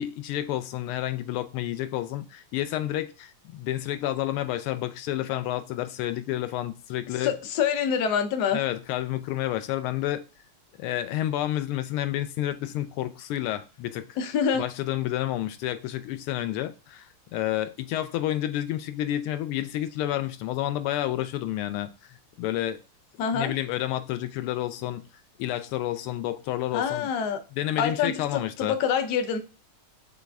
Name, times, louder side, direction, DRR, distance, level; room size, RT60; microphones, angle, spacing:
voice 1, 0.0-7.3 8.5-10.2 10.8-14.2 14.6-21.9 22.4-22.8 23.3-25.0 25.4-27.1 27.5-28.8, left 13 dB, 90° left, 1.5 m, -30 dB
voice 2, 7.2-8.6 14.2-14.7 23.2-23.5 26.7-27.4 27.8-29.4, left 7 dB, 65° left, 1.0 m, -26 dB
6.1 x 2.4 x 3.3 m
omnidirectional pair, 2.3 m